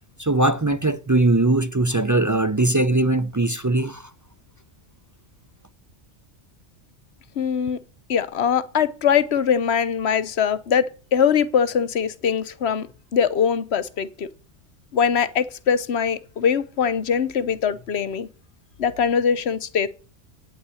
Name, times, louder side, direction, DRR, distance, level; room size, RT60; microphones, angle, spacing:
voice 1, 0.2-4.1, right 2 dB, 30° right, 0.3 m, -20 dB
voice 2, 7.4-7.8 8.1-12.9 13.1-14.3 14.9-18.3 18.8-19.9, left 7 dB, 65° left, 1.1 m, -22 dB
9.4 x 8.5 x 9.6 m
omnidirectional pair, 1.2 m